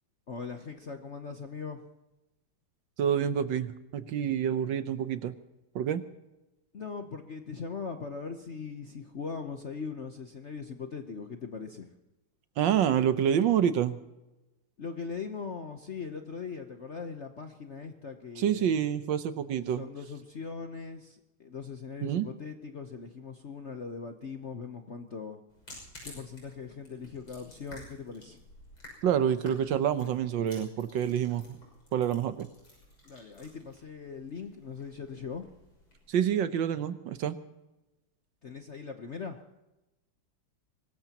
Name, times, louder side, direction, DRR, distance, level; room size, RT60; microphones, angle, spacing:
voice 1, 0.3-1.8 6.7-11.9 14.8-18.7 19.8-25.4 26.0-28.4 33.0-35.5 38.4-39.4, left 5 dB, 50° left, 6 dB, 0.9 m, -40 dB
voice 2, 3.0-5.3 5.7-6.0 12.6-14.0 18.4-19.8 22.0-22.3 29.0-31.4 31.9-32.5 36.1-37.4, right 9 dB, 70° right, 11 dB, 1.4 m, -27 dB
sound 1, 25.5-36.2, left 1 dB, 80° left, 6.9 m, -53 dB
24.0 x 19.5 x 2.9 m, 0.98 s
omnidirectional pair, 2.3 m